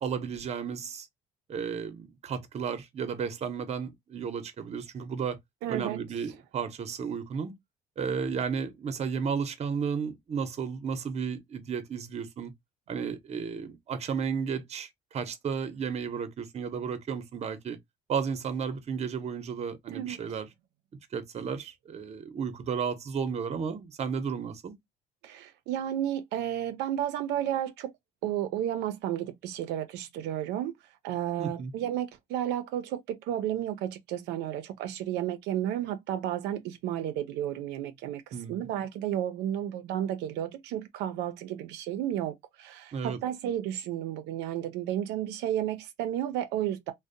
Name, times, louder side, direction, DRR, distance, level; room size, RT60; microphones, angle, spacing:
voice 1, 0.0-1.1 1.5-5.4 5.7-7.6 8.0-12.5 12.9-17.8 18.1-20.5 21.1-24.7 31.4-31.7 38.3-38.7 42.9-43.2, right 6 dB, 40° right, 0.6 m, -33 dB
voice 2, 5.6-6.0 19.9-20.2 25.2-27.9 28.2-30.7 31.0-38.2 38.5-46.9, right 11 dB, 85° right, 0.4 m, -32 dB
2.5 x 2.0 x 2.5 m
cardioid pair, 110°, 17 cm